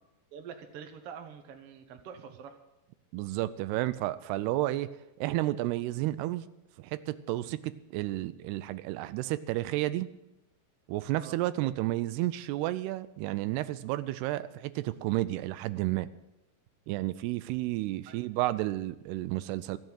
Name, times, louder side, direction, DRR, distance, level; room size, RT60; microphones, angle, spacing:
voice 1, 0.3-2.6 11.2-11.4 18.1-18.2, right 7 dB, 65° right, 5 dB, 1.5 m, -46 dB
voice 2, 3.1-4.9 5.2-6.5 6.8-10.1 10.9-16.1 16.9-19.8, right 16 dB, 85° right, 14 dB, 2.6 m, -31 dB
14.5 x 7.8 x 8.9 m, 0.90 s
omnidirectional pair, 4.7 m